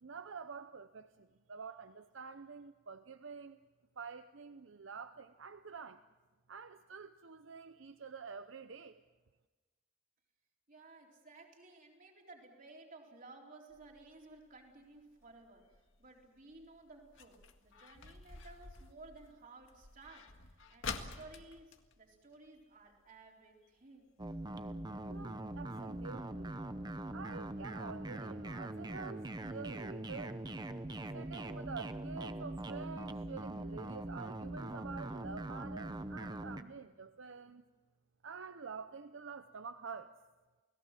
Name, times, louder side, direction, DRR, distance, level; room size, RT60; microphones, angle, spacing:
voice 1, 0.0-3.6 4.0-6.0 6.5-9.0 25.1-26.6 27.1-30.4 31.1-37.6 38.2-40.1, right 5 dB, 75° right, 10 dB, 0.7 m, -48 dB
voice 2, 10.7-24.1, right 3 dB, 45° right, 0 dB, 4.0 m, -56 dB
sound 1, 13.7-23.0 23.3-23.4 23.6-24.0 24.5-24.6 25.1-25.2 25.5-25.6 26.0-26.1, left 5 dB, 75° left, 1.9 m, -49 dB
sound 2, 24.2-36.6, right 1 dB, 20° right, 0.9 m, -42 dB
29.5 x 18.5 x 7.5 m, 1.3 s
head